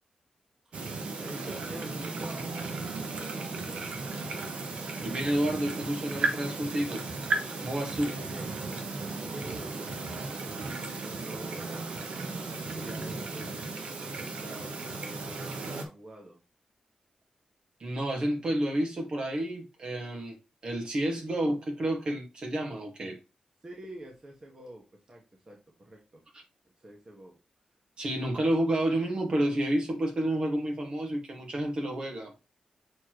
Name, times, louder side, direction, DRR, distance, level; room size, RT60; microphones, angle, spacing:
sound 1, 0.7-15.9, right 3 dB, 70° right, 1.2 m, -35 dB
voice 1, 1.2-3.9 8.0-8.9 9.2-11.9 12.2-16.4 23.6-25.6 25.8-26.2 26.8-27.4 28.2-28.4, right 1 dB, 30° right, 1.6 m, -47 dB
voice 2, 5.0-7.3 7.6-8.1 17.8-20.4 20.6-23.2 28.0-32.3, right 1 dB, 50° right, 2.0 m, -30 dB
7.0 x 4.4 x 3.2 m
wide cardioid pair, 130°, 2 cm